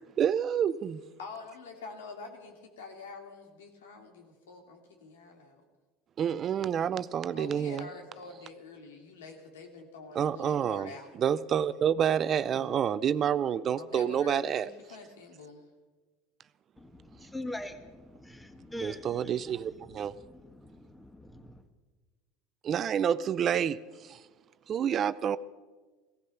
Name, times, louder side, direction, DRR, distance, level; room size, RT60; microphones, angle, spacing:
voice 1, 0.2-1.0 6.2-7.9 10.1-14.7 18.8-20.1 22.6-24.2 24.7-25.4, right 8 dB, 40° right, 0.5 m, -28 dB
voice 2, 1.2-5.6 7.3-11.1 13.8-15.6, left 4 dB, 90° left, 2.5 m, -46 dB
voice 3, 16.8-21.6, left 1 dB, 5° left, 1.5 m, -43 dB
16.0 x 15.0 x 5.8 m
supercardioid pair, 95°, 0 cm